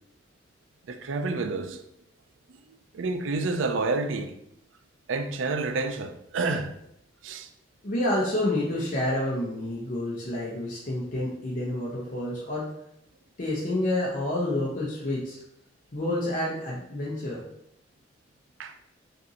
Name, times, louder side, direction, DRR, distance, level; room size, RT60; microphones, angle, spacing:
voice 1, 0.9-1.8 2.9-4.3 5.1-6.7 7.2-7.5 18.6-18.7, right 3 dB, 85° right, 0.4 m, -29 dB
voice 2, 7.8-12.6 13.4-15.4 15.9-17.4, left 1 dB, 45° left, 0.8 m, -28 dB
5.3 x 2.6 x 2.8 m
head